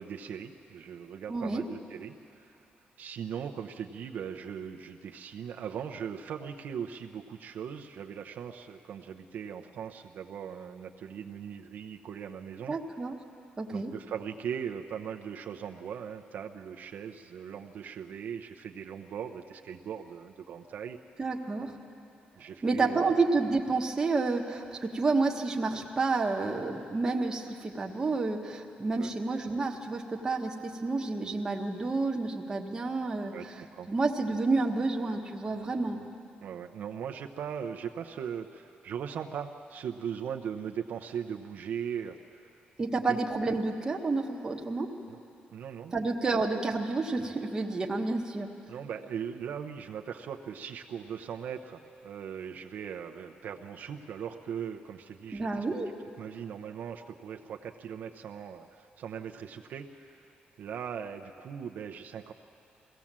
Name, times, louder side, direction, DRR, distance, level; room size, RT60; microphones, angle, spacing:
voice 1, 0.0-2.6 3.0-12.8 13.7-21.0 22.4-23.1 29.0-29.1 33.3-33.9 36.4-42.5 43.1-43.2 45.1-45.2 45.5-45.9 48.7-55.7 56.2-60.2 60.6-62.3, right 8 dB, 60° right, 4 dB, 0.7 m, -39 dB
voice 2, 1.3-1.6 12.7-13.2 13.6-13.9 21.2-21.7 22.6-33.3 33.9-36.0 42.8-44.9 45.9-48.5 55.3-55.9, right 3 dB, 20° right, 1 dB, 1.1 m, -29 dB
22.5 x 17.0 x 7.4 m, 2.7 s
wide cardioid pair, 180°, 3 cm